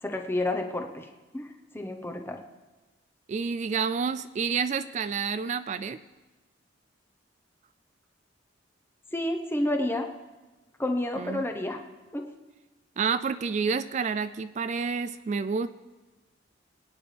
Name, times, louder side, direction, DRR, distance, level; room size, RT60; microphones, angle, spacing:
voice 1, 0.0-1.1 1.3-2.4 9.1-10.1 10.8-11.8 12.1-12.3, left 1 dB, 10° left, 4 dB, 0.9 m, -30 dB
voice 2, 3.3-6.0 11.2-11.4 13.0-15.7, right 5 dB, 35° right, 13 dB, 0.3 m, -29 dB
23.5 x 9.6 x 3.4 m, 1.2 s
head